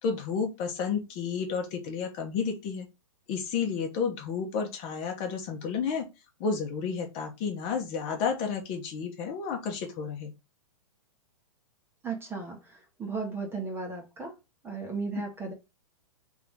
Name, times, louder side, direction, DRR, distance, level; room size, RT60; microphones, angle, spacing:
voice 1, 0.0-2.9 3.3-6.0 6.4-10.3 15.1-15.2, left 6 dB, 30° left, 1.1 m, -31 dB
voice 2, 12.0-14.3 14.6-15.5, right 4 dB, 15° right, 1.2 m, -35 dB
3.8 x 3.6 x 3.6 m
hypercardioid pair, 150°, 18 cm